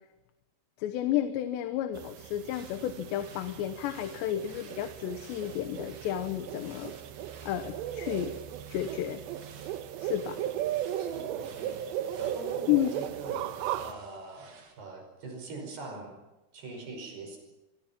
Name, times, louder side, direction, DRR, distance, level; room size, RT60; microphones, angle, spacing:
voice 1, 0.8-6.9 7.4-8.4 8.7-9.2 10.0-10.4 12.7-12.9, left 11 dB, 85° left, 9 dB, 3.3 m, -31 dB
sound 1, 1.9-13.9, right 11 dB, 85° right, 3.3 m, -37 dB
sound 2, 2.5-14.8, right 5 dB, 50° right, 4.3 m, -55 dB
voice 2, 11.0-13.5 13.8-16.1 16.5-17.4, right 3 dB, 65° right, 4 dB, 7.4 m, -43 dB
26.5 x 24.0 x 6.0 m, 1.0 s
omnidirectional pair, 4.9 m